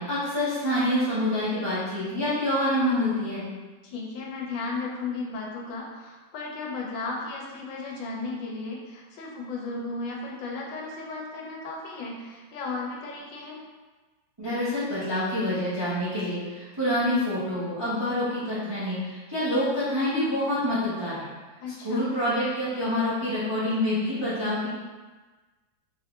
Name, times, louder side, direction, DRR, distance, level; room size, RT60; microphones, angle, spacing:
voice 1, 0.0-3.5 14.4-21.3 21.8-24.7, left 1 dB, 30° right, -12 dB, 0.5 m, -27 dB
voice 2, 3.8-13.6 21.6-22.1, left 3 dB, 75° left, -2 dB, 1.3 m, -35 dB
3.6 x 3.2 x 2.3 m, 1.3 s
omnidirectional pair, 2.1 m